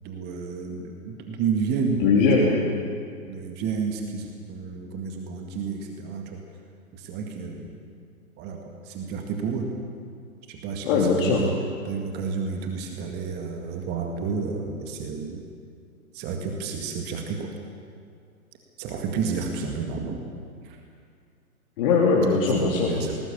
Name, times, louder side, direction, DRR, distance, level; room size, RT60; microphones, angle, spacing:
voice 1, 0.0-2.0 2.3-2.6 3.3-6.4 6.9-7.8 8.4-9.7 10.5-11.5 11.8-15.4 16.1-17.5 18.8-20.2 20.6-20.8 22.5-23.2, right 5 dB, 20° right, 3 dB, 2.0 m, -31 dB
voice 2, 2.0-2.6 10.8-11.4 21.8-22.9, left 4 dB, 35° left, -3 dB, 3.3 m, -20 dB
21.5 x 19.0 x 8.6 m, 2.3 s
figure-of-eight pair, 125°, 45 cm